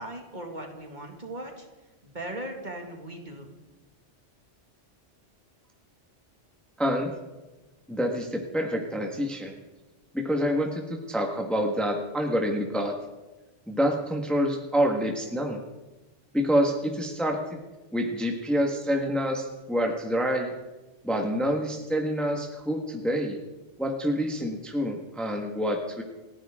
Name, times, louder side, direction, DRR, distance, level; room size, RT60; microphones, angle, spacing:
voice 1, 0.0-1.7 2.0-3.5, right 1 dB, 40° right, 2 dB, 2.3 m, -38 dB
voice 2, 6.8-7.1 7.9-9.5 10.1-12.9 13.7-15.6 16.3-17.6 17.9-20.5 21.0-23.4 23.8-26.0, equal, ahead, 2 dB, 1.6 m, -27 dB
29.5 x 11.0 x 3.8 m, 1.2 s
omnidirectional pair, 1.3 m